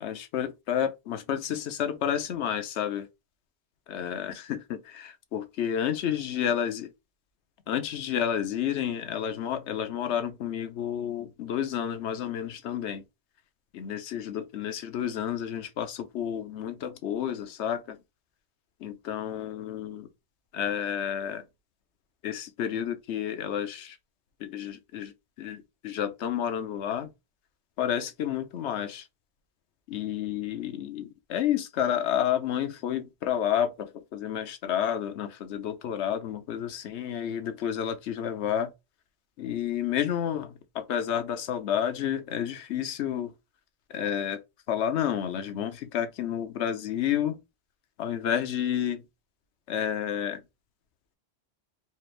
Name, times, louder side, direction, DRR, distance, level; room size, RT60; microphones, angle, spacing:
voice 1, 0.0-3.1 3.9-6.9 7.7-13.0 13.7-18.0 18.8-20.1 20.5-21.4 22.2-24.0 24.4-25.1 25.4-27.1 27.8-29.0 29.9-38.7 39.4-43.3 43.9-44.4 44.7-47.4 48.0-49.0 49.7-50.4, left 9 dB, 85° left, 1.0 m, -30 dB
4.4 x 2.5 x 3.2 m
omnidirectional pair, 1.1 m